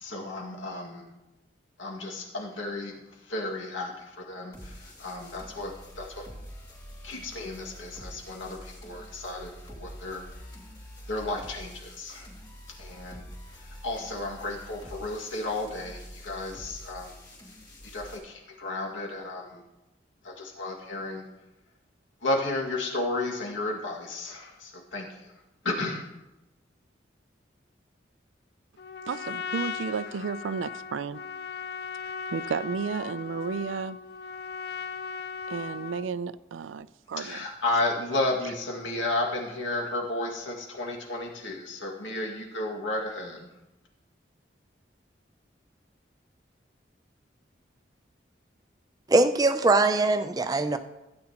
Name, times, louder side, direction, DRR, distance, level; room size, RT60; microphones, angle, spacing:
voice 1, 0.0-1.0 1.8-2.9 3.3-6.2 7.0-9.5 9.8-10.2 11.1-12.3 12.8-13.3 13.8-17.1 17.9-19.6 20.2-21.2 22.2-25.1 25.6-26.1 37.2-43.5, left 2 dB, 85° left, 2.0 m, -33 dB
sound 1, 4.5-18.2, equal, 20° left, 3.3 m, -46 dB
Trumpet, 28.8-36.1, left 6 dB, 55° left, 0.5 m, -37 dB
voice 2, 29.1-31.2 32.3-34.0 35.5-37.4, right 6 dB, 90° right, 0.4 m, -32 dB
voice 3, 49.1-50.8, right 2 dB, 20° right, 0.4 m, -22 dB
15.5 x 8.7 x 2.9 m
head